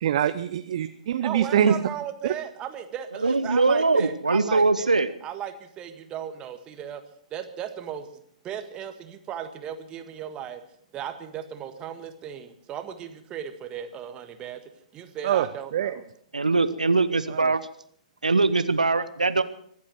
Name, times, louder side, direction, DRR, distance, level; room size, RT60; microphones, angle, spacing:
voice 1, 0.0-1.7 15.2-15.4 15.7-15.9 17.3-17.5, right 11 dB, 50° right, 11 dB, 0.7 m, -24 dB
voice 2, 1.2-5.0 5.2-7.0 7.3-8.1 8.4-10.6 10.9-14.6 14.9-16.0, right 9 dB, 25° right, 8 dB, 1.6 m, -36 dB
voice 3, 3.2-5.1 16.3-17.6 18.2-19.4, right 3 dB, 80° right, 12 dB, 0.9 m, -22 dB
24.0 x 8.6 x 6.4 m, 0.63 s
figure-of-eight pair, 115°, 4 cm